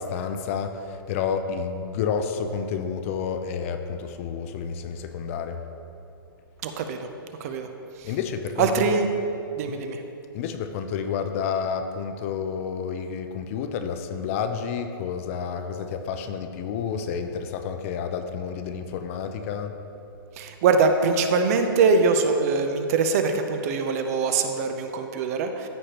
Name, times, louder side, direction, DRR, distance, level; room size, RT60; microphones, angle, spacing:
voice 1, 0.0-5.6 8.0-9.0 9.7-9.8 10.3-19.8, left 6 dB, 35° left, 7 dB, 0.5 m, -30 dB
voice 2, 6.6-7.1 7.4-7.7 8.0-8.1 8.6-9.1 9.6-10.0 20.4-25.7, right 4 dB, 40° right, 7 dB, 0.6 m, -23 dB
13.5 x 5.0 x 3.0 m, 2.7 s
hypercardioid pair, 150°, 13 cm